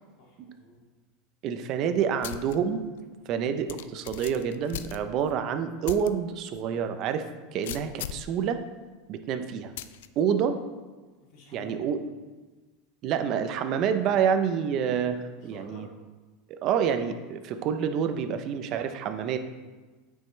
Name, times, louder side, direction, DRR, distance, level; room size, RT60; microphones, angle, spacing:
voice 1, 0.2-0.8 11.2-11.8 15.3-15.9, left 3 dB, 55° left, -4 dB, 2.4 m, -51 dB
voice 2, 1.4-2.8 3.3-7.3 7.5-8.6 9.1-9.7 10.2-10.6 11.5-12.0 13.0-15.9 16.5-19.4, right 7 dB, 45° right, 8 dB, 0.7 m, -28 dB
sound 1, 2.2-2.6 3.0-3.1 3.7-5.4 5.8-6.1 6.5-6.6 7.6-8.3 9.8-10.1, left 12 dB, 80° left, 0.3 m, -38 dB
8.9 x 5.5 x 3.3 m, 1.3 s
supercardioid pair, 135°, 0 cm